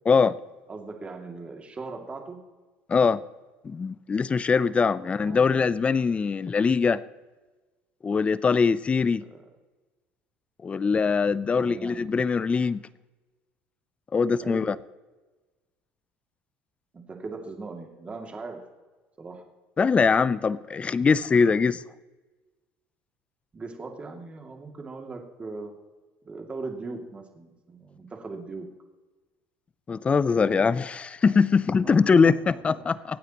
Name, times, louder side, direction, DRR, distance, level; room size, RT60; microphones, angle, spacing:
voice 1, 0.1-0.4 2.9-3.2 3.6-7.0 8.0-9.2 10.6-12.8 14.1-14.8 19.8-21.8 29.9-32.9, left 5 dB, 25° left, 18 dB, 0.5 m, -22 dB
voice 2, 0.7-2.4 5.0-5.7 9.2-9.4 11.4-12.1 14.4-14.7 16.9-18.7 19.2-19.4 23.5-25.7 26.2-28.7 32.9-33.0, right 3 dB, 25° right, 2 dB, 2.4 m, -39 dB
24.0 x 9.1 x 3.0 m, 1.2 s
supercardioid pair, 105°, 5 cm